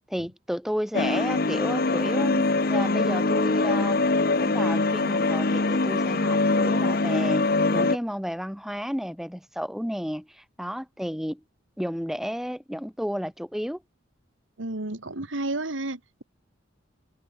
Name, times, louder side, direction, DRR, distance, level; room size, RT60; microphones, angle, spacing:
voice 1, 0.1-4.0 4.4-11.4 11.8-13.8, equal, ahead, 5.3 m, -32 dB
sound 1, 0.9-8.0, left 3 dB, 50° left, 1.0 m, -23 dB
voice 2, 14.6-16.2, right 2 dB, 80° right, 2.2 m, -31 dB
open air
head